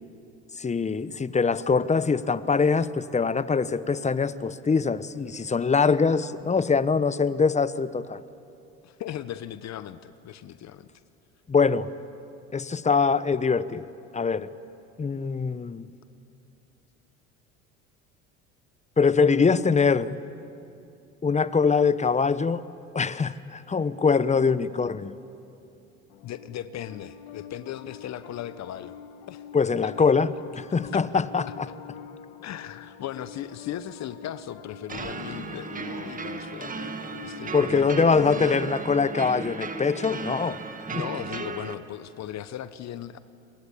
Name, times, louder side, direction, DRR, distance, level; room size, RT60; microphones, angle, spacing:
voice 1, 0.6-8.2 11.5-11.9 12.5-13.8 14.1-14.5 15.0-15.9 19.0-20.2 21.2-22.6 22.9-25.1 29.5-30.3 30.6-31.4 37.5-40.6, left 5 dB, 20° left, 16 dB, 0.9 m, -23 dB
voice 2, 8.8-10.9 26.2-29.0 29.3-29.4 29.8-29.9 30.8-31.5 32.4-36.7 37.2-38.7 40.9-43.2, left 11 dB, 50° left, 13 dB, 1.0 m, -37 dB
Piano, 26.1-38.6, left 8 dB, 75° left, 1.6 m, -45 dB
sound 1, 34.9-41.7, right 4 dB, 25° right, 1.8 m, -35 dB
28.0 x 21.5 x 8.6 m, 2.7 s
hypercardioid pair, 75°, 34 cm